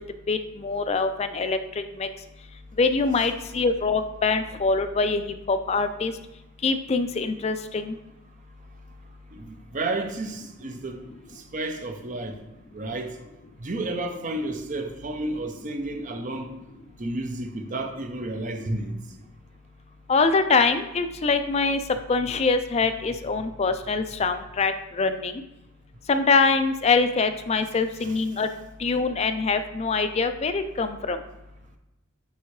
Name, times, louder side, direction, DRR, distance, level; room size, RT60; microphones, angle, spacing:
voice 1, 0.3-2.1 2.8-5.2 5.5-6.1 6.6-7.9 20.1-21.8 22.1-25.3 26.1-28.5 28.8-31.2, left 4 dB, 30° left, 0.3 m, -24 dB
voice 2, 9.3-11.0 11.3-12.4 12.7-13.2 13.6-16.5 17.0-19.0 28.0-28.2, right 2 dB, 35° right, 0.5 m, -31 dB
9.4 x 3.6 x 3.1 m
head